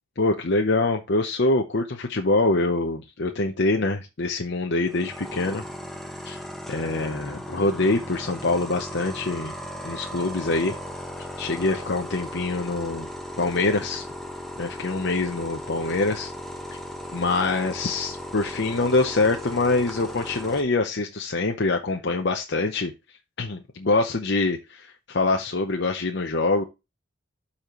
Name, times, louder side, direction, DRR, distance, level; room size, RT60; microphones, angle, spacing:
voice 1, 0.2-5.6 6.2-6.4 6.7-9.5 9.8-10.7 11.4-13.1 13.4-14.0 14.6-16.3 17.1-22.9 23.4-26.6, left 2 dB, 55° left, 3 dB, 0.8 m, -24 dB
compressor for the plasma cutting system, 4.9-20.6, left 1 dB, ahead, 1.0 m, -37 dB
12.0 x 4.2 x 3.0 m, 0.25 s
head